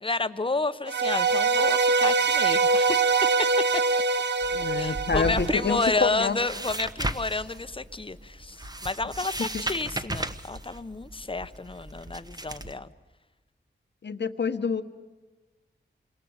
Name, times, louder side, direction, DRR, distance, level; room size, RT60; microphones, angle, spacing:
voice 1, 0.0-3.1 4.8-12.9, left 3 dB, 25° left, 12 dB, 1.0 m, -30 dB
sound 1, 0.9-6.1, right 4 dB, 65° right, 1.0 m, -24 dB
sound 2, 4.4-12.7, right 1 dB, 20° right, 1.1 m, -35 dB
voice 2, 4.5-6.4 9.4-9.6 14.0-14.8, left 5 dB, 65° left, 9 dB, 1.3 m, -27 dB
27.5 x 22.0 x 8.1 m, 1.3 s
wide cardioid pair, 70°, 19 cm